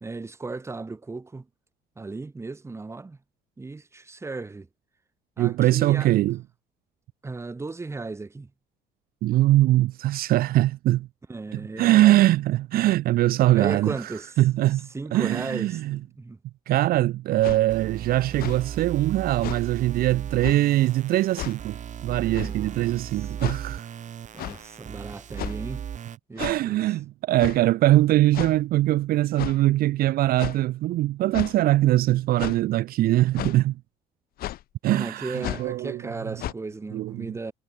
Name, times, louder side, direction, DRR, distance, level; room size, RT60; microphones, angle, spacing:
voice 1, 0.0-1.5 2.0-3.2 3.6-4.7 5.4-6.1 7.2-8.5 11.3-12.2 13.5-14.3 14.9-16.4 22.4-23.3 24.3-25.9 26.3-26.8 34.8-37.5, right 3 dB, 15° right, 1.2 m, -36 dB
voice 2, 5.4-6.4 9.2-11.1 11.5-16.0 16.7-21.8 22.0-23.9 26.4-33.8 34.8-36.0 36.9-37.3, right 15 dB, 60° right, 0.4 m, -22 dB
sound 1, 17.4-17.6 18.3-18.6 19.4-19.6 20.4-20.6 21.3-21.6 22.3-22.6 23.4-23.6 24.4-24.6 25.4-25.7 26.4-26.6 27.4-27.6 28.3-28.6 29.3-29.6 30.4-30.6 31.3-31.5 32.4-32.6 33.3-33.6 34.4-34.6 35.3-35.7 36.4-36.5, left 14 dB, 60° left, 0.7 m, -33 dB
sound 2, 17.7-26.2, right 9 dB, 45° right, 2.2 m, -36 dB
cardioid pair, 110°, 17 cm